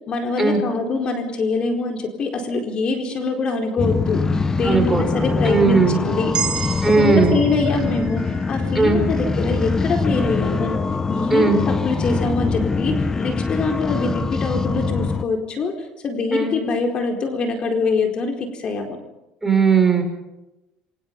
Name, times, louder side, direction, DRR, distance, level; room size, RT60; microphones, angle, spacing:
voice 1, 0.1-4.2 4.5-6.3 7.0-10.8 11.1-15.7 16.0-19.0, left 3 dB, 40° left, 3 dB, 4.3 m, -24 dB
sound 1, 3.8-15.2, left 4 dB, 20° left, 1.2 m, -23 dB
voice 2, 4.6-5.0 5.4-6.0 6.8-7.3 8.7-9.0 11.3-11.6 16.3-16.5 19.4-20.0, right 4 dB, 10° right, 4 dB, 6.0 m, -17 dB
sound 2, 6.3-10.6, right 9 dB, 40° right, 2.8 m, -33 dB
29.0 x 25.0 x 5.5 m, 0.97 s
supercardioid pair, 115°, 3 cm